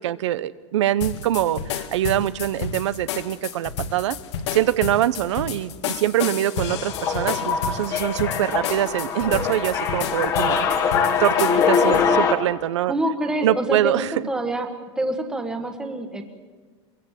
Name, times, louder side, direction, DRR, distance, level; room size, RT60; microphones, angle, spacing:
voice 1, 0.0-4.2 4.5-10.9 11.2-12.9 13.4-14.1, right 13 dB, 75° right, 15 dB, 0.8 m, -24 dB
sound 1, 1.0-12.1, left 7 dB, 65° left, 1.8 m, -31 dB
sound 2, 6.7-12.3, left 6 dB, 20° left, 1.4 m, -23 dB
voice 2, 12.9-14.7 15.0-16.2, right 1 dB, 5° right, 5 dB, 1.4 m, -26 dB
23.5 x 23.0 x 7.5 m, 1.4 s
supercardioid pair, 175°, 15 cm